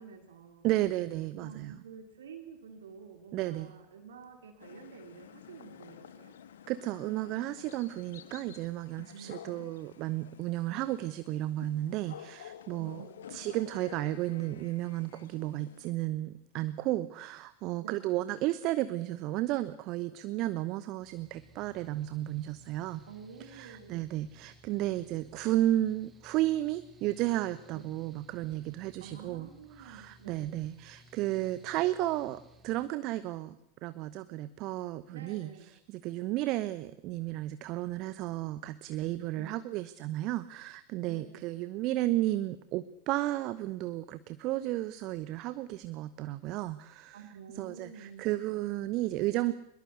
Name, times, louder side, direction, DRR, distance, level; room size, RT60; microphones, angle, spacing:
voice 1, 0.0-0.7 1.4-6.3 9.1-9.6 12.8-13.2 17.8-18.0 23.1-24.0 27.7-27.8 29.0-30.6 35.1-35.7 39.3-39.6 41.1-41.5 47.1-48.3, right 6 dB, 60° right, 5 dB, 2.6 m, -49 dB
voice 2, 0.6-1.8 3.3-3.7 6.7-13.0 13.3-23.0 23.4-29.5 29.8-33.6 33.8-47.2 47.5-49.5, right 15 dB, 40° right, 15 dB, 1.0 m, -33 dB
sound 1, 4.6-15.9, left 9 dB, 60° left, 1.7 m, -51 dB
Mechanical fan, 21.0-32.9, left 1 dB, 20° right, 2.9 m, -59 dB
23.0 x 21.5 x 8.1 m, 0.74 s
figure-of-eight pair, 90°, 0 cm